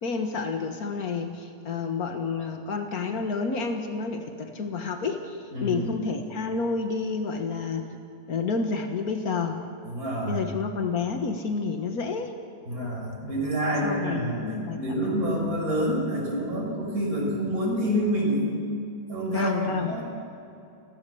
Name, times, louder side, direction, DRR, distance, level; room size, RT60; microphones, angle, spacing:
voice 1, 0.0-7.9 8.3-9.6 10.3-12.3 13.8-14.8 19.3-20.0, left 4 dB, 80° left, 5 dB, 1.9 m, -29 dB
voice 2, 5.5-5.9 9.8-10.5 12.7-14.4 14.7-18.5 19.1-20.0, equal, 85° right, -3 dB, 6.4 m, -27 dB
29.0 x 16.5 x 7.1 m, 2.6 s
omnidirectional pair, 1.5 m